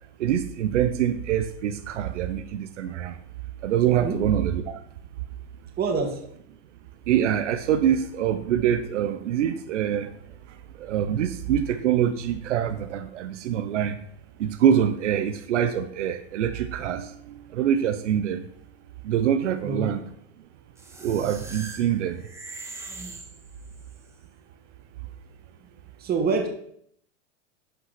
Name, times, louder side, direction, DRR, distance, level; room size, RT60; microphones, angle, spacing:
voice 1, 0.2-3.1 3.6-4.8 7.1-10.1 10.8-14.0 14.4-17.1 17.5-18.4 19.0-20.0 21.0-22.2, right 9 dB, 75° right, 1.0 m, -24 dB
voice 2, 5.8-6.2 19.6-19.9 26.0-26.5, right 4 dB, 25° right, 2.1 m, -25 dB
sound 1, 20.8-24.0, right 3 dB, 5° right, 1.6 m, -41 dB
11.0 x 5.6 x 5.8 m
hypercardioid pair, 125°, 36 cm